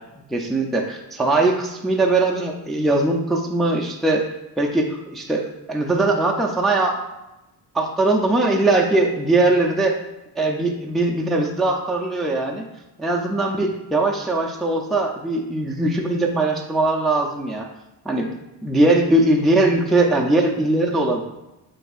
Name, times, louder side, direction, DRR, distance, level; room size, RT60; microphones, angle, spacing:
voice 1, 0.3-4.2 4.6-7.0 7.7-10.0 10.4-12.6 13.0-17.7 18.1-18.3 18.6-21.2, right 2 dB, ahead, 0 dB, 0.4 m, -20 dB
7.7 x 2.7 x 2.4 m, 0.96 s
cardioid pair, 100°, 39 cm